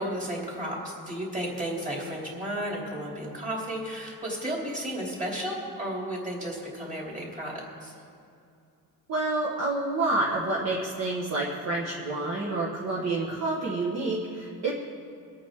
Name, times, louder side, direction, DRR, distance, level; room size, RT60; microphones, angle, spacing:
voice 1, 0.0-7.9, right 1 dB, 20° right, -3 dB, 3.1 m, -33 dB
voice 2, 9.1-14.7, right 2 dB, 45° right, -5 dB, 1.5 m, -28 dB
24.0 x 8.7 x 3.7 m, 2.5 s
wide cardioid pair, 170°, 36 cm